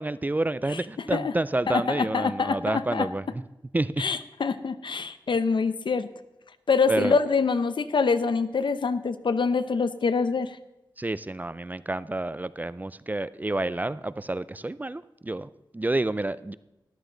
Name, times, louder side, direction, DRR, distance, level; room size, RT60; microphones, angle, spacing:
voice 1, 0.0-3.2 3.7-4.0 6.9-7.2 11.0-16.5, right 2 dB, 20° right, 16 dB, 0.4 m, -29 dB
voice 2, 1.7-3.1 4.0-6.1 6.7-10.6, left 5 dB, 75° left, 12 dB, 0.7 m, -25 dB
13.0 x 12.0 x 3.9 m, 0.97 s
wide cardioid pair, 90°, 8 cm